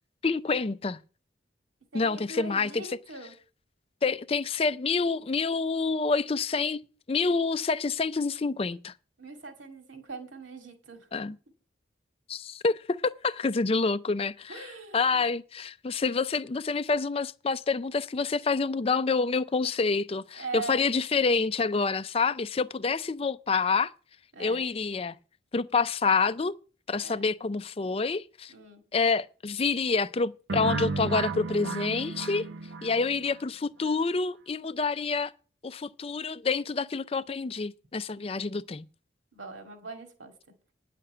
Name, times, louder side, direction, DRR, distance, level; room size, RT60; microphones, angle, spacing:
voice 1, 0.2-1.0 1.9-3.0 4.0-6.8 7.1-8.9 11.1-11.4 12.3-14.7 14.9-23.9 24.4-25.2 25.5-26.5 26.9-28.5 28.9-32.5 32.8-35.3 35.6-38.9, left 4 dB, 30° left, 0.4 m, -27 dB
voice 2, 1.9-3.3 9.2-11.1 14.5-15.2 20.3-20.8 24.3-24.7 27.0-27.3 28.5-28.8 39.3-40.3, right 3 dB, 90° right, 2.3 m, -41 dB
sound 1, 30.5-33.4, right 3 dB, 75° right, 0.6 m, -33 dB
10.0 x 5.9 x 7.8 m
head